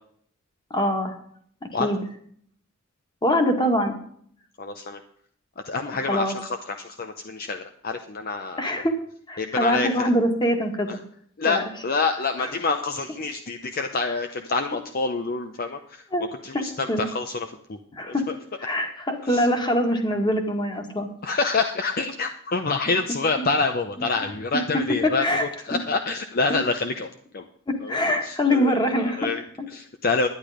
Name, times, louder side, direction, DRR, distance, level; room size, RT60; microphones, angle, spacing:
voice 1, 0.7-1.2 1.6-2.0 3.2-3.9 5.9-6.4 8.6-8.9 9.3-10.9 11.5-11.6 12.4-12.5 16.1-16.2 16.9-17.1 18.0-18.2 18.6-21.1 23.4-23.5 24.0-24.1 25.0-25.5 26.5-26.6 27.7-29.3 29.6-29.7, equal, 20° left, 4 dB, 1.9 m, -24 dB
voice 2, 4.6-5.0 5.6-8.6 9.4-10.1 10.9-11.0 11.4-16.0 16.4-17.8 18.1-18.2 19.3-19.5 21.2-27.5 27.8-28.0 28.2-29.4 29.7-30.3, left 3 dB, 45° left, 6 dB, 0.8 m, -27 dB
11.5 x 10.5 x 5.0 m, 0.62 s
head